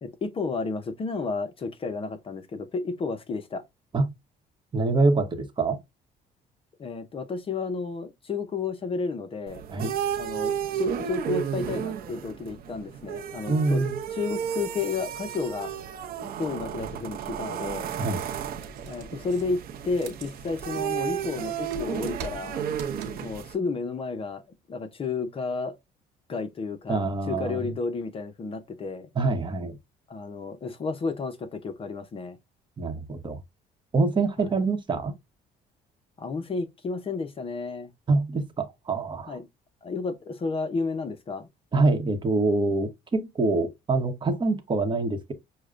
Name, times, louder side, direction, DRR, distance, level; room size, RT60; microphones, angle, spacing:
voice 1, 0.0-3.6 6.8-9.6 10.2-13.8 14.1-15.7 16.2-17.9 18.9-22.7 23.2-24.4 24.7-25.8 26.3-29.1 30.1-32.4 36.2-37.9 39.3-39.5 39.8-41.5, left 4 dB, 35° left, 0.6 m, -32 dB
voice 2, 4.7-5.8 9.7-9.9 13.5-14.0 18.0-18.2 26.9-27.7 29.1-29.8 32.8-33.4 33.9-35.1 38.1-39.4 41.7-45.3, right 3 dB, 30° right, 0.9 m, -25 dB
sound 1, 9.5-23.5, right 9 dB, 65° right, 0.6 m, -33 dB
sound 2, 17.9-23.5, right 3 dB, 80° right, 0.9 m, -44 dB
6.3 x 2.1 x 2.4 m
cardioid pair, 110°, 17 cm